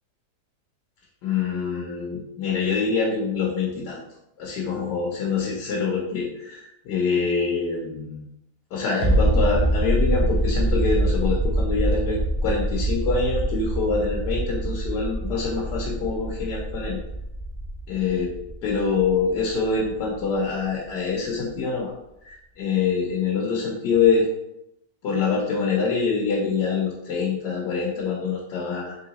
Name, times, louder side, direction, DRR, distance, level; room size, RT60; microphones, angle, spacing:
voice 1, 1.2-4.0 4.4-8.3 8.7-17.0 17.9-18.3 18.6-21.9 22.2-24.3 25.0-29.0, left 5 dB, 75° left, -2 dB, 1.4 m, -25 dB
sound 1, 9.0-20.3 20.6-20.7, right 1 dB, 20° right, 1.5 m, -25 dB
3.8 x 3.5 x 4.0 m, 0.85 s
omnidirectional pair, 1.8 m